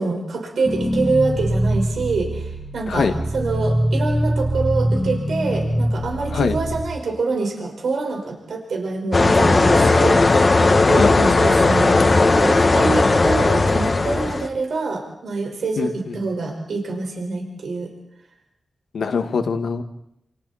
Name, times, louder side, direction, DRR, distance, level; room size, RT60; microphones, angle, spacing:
voice 1, 0.0-10.6 10.9-17.9, right 3 dB, 85° right, 1 dB, 5.0 m, -26 dB
sound 1, 0.6-6.8, right 1 dB, 10° left, 2.6 m, -23 dB
sound 2, 9.1-14.5, left 3 dB, 35° left, 1.8 m, -16 dB
voice 2, 10.9-11.4 15.8-15.9 18.9-19.8, left 5 dB, 85° left, 6 dB, 2.0 m, -22 dB
30.0 x 28.5 x 4.3 m, 0.82 s
wide cardioid pair, 165°, 0 cm